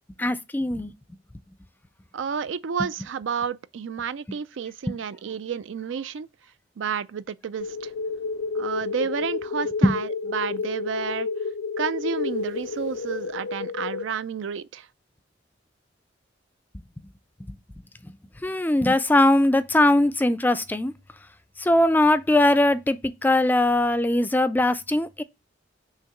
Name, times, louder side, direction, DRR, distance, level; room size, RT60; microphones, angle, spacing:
voice 1, 0.2-0.9 9.8-10.0 18.4-20.9 21.6-25.2, left 1 dB, 10° left, 0.3 m, -20 dB
voice 2, 2.1-6.3 6.8-7.9 8.5-11.3 11.8-14.9, right 6 dB, 85° right, 0.4 m, -31 dB
sound 1, 7.6-14.0, left 4 dB, 90° left, 0.5 m, -30 dB
6.4 x 3.0 x 5.7 m
head